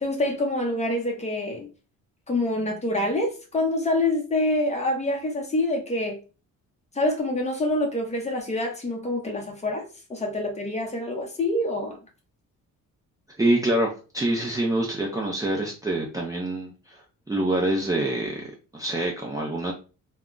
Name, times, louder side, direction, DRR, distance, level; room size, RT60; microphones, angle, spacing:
voice 1, 0.0-1.7 2.3-6.2 6.9-12.0, left 1 dB, 20° left, 0.7 m, -26 dB
voice 2, 13.4-17.0 17.3-18.4 18.7-19.7, right 1 dB, 10° right, 0.5 m, -26 dB
2.3 x 2.1 x 3.7 m
cardioid pair, 125°, 33 cm